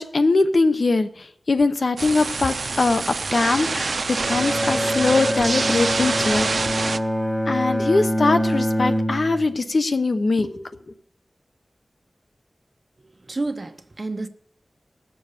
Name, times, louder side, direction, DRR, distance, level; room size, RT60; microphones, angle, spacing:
voice 1, 0.0-3.0 3.3-6.5 7.5-10.6, left 3 dB, 60° left, 0.9 m, -21 dB
sound 1, 2.0-7.0, right 4 dB, 70° right, 0.5 m, -26 dB
Bowed string instrument, 4.1-9.6, equal, 10° left, 3.0 m, -25 dB
voice 2, 13.0-14.3, right 2 dB, 40° right, 1.0 m, -30 dB
19.0 x 7.1 x 6.7 m
wide cardioid pair, 85°, 0 cm